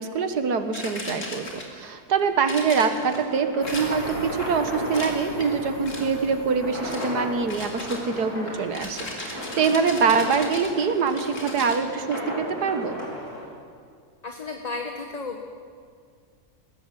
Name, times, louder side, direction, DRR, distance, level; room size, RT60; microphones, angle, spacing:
voice 1, 0.0-13.0, right 5 dB, 75° right, 8 dB, 2.0 m, -24 dB
Martini Shaker, 0.7-1.9 2.5-3.2 3.7-4.3 4.9-5.5 5.9-6.3 6.9-7.1 7.5-11.8, left 2 dB, 50° left, 3.1 m, -37 dB
sound 1, 2.2-13.4, left 1 dB, 65° left, 5.2 m, -36 dB
sound 2, 3.6-9.8, equal, 90° left, 5.5 m, -42 dB
voice 2, 14.2-15.4, left 3 dB, 25° left, 3 dB, 1.2 m, -33 dB
20.5 x 16.5 x 7.6 m, 2.1 s
omnidirectional pair, 1.7 m